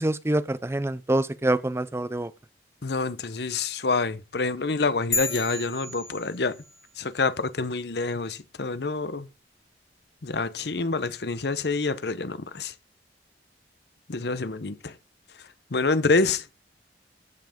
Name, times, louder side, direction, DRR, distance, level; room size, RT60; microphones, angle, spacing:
voice 1, 0.0-2.3, right 1 dB, 15° right, 0.5 m, -26 dB
voice 2, 2.8-6.6 7.0-9.3 10.2-12.7 14.1-15.0 15.4-16.5, left 3 dB, 65° left, 0.9 m, -27 dB
sound 1, 5.1-6.8, left 2 dB, 20° left, 2.8 m, -32 dB
14.5 x 5.9 x 5.1 m
head